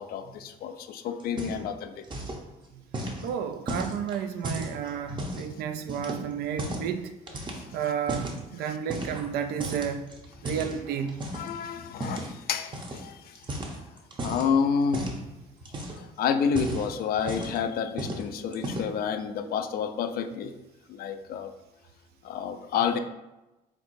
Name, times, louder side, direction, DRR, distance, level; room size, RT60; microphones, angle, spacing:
voice 1, 0.0-2.0 7.4-7.7 8.6-8.7 11.3-13.5 13.8-13.9 14.2-15.1 15.9-20.5 20.9-21.5 22.2-23.0, left 6 dB, 65° left, 8 dB, 0.5 m, -29 dB
sound 1, 1.2-2.4 2.9-5.5 5.9-6.9 7.3-8.4 8.9-9.3 9.6-11.5 12.0-12.3 12.7-13.0 13.3-14.5 14.9-15.2 15.6-16.1 16.4-17.6 18.0-18.2 18.5-19.0, right 1 dB, 30° right, 0.8 m, -35 dB
voice 2, 3.2-7.2 7.7-10.1 10.4-11.1, right 8 dB, 70° right, 8 dB, 0.4 m, -32 dB
4.6 x 3.6 x 2.6 m, 1.0 s
cardioid pair, 110°, 17 cm